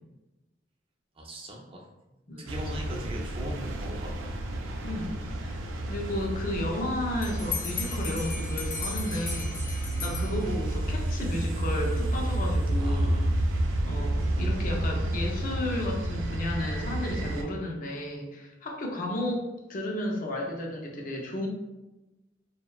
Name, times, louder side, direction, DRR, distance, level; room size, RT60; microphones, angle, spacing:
voice 1, 1.2-1.9 2.5-4.4 10.1-10.5 12.8-13.3, equal, 30° right, -1 dB, 0.4 m, -40 dB
sound 1, 2.5-17.4, right 1 dB, 90° right, 0.4 m, -30 dB
voice 2, 4.8-5.1 5.4-13.2 13.9-21.5, left 1 dB, 45° left, 0 dB, 0.5 m, -33 dB
Bell, 7.2-10.8, left 5 dB, 85° left, 0.6 m, -37 dB
2.6 x 2.1 x 2.3 m, 1.0 s
head